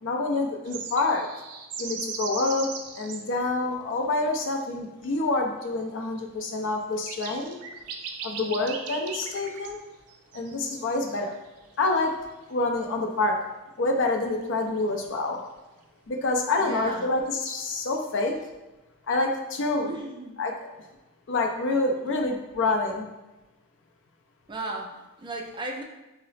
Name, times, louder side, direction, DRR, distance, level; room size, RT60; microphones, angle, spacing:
voice 1, 0.0-1.3 1.8-2.7 3.0-7.5 8.2-9.8 10.3-11.3 11.8-12.1 12.5-13.4 13.8-15.4 16.1-18.3 19.1-19.9 20.4-20.5 21.3-23.1, left 2 dB, 60° left, 3 dB, 0.4 m, -27 dB
sound 1, 0.7-3.2 5.0-5.1 6.4-6.5 6.9-9.8 10.1-11.5 11.8-11.9 14.5-14.6 14.8-14.9 17.1-17.6, right 6 dB, 90° right, 0.4 m, -38 dB
voice 2, 16.6-17.1 19.9-20.4 24.5-25.8, right 2 dB, 20° right, 1 dB, 0.3 m, -35 dB
2.9 x 2.0 x 4.0 m, 1.1 s
head